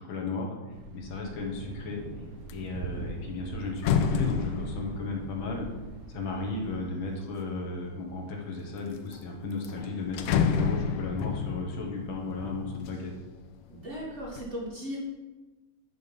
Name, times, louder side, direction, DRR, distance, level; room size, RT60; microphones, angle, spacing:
voice 1, 0.0-2.0 2.5-5.7 6.1-13.1, left 3 dB, 70° left, 1 dB, 1.8 m, -35 dB
Thunder, 0.7-6.8, right 3 dB, 75° right, 1.2 m, -42 dB
sound 1, 1.4-1.8 2.2-7.5 8.1-8.8 9.1-9.2 9.5-13.4 13.8-14.4, left 6 dB, 90° left, 1.5 m, -31 dB
voice 2, 13.7-15.0, equal, 35° right, -5 dB, 1.6 m, -37 dB
6.1 x 5.2 x 5.2 m, 1.2 s
omnidirectional pair, 2.3 m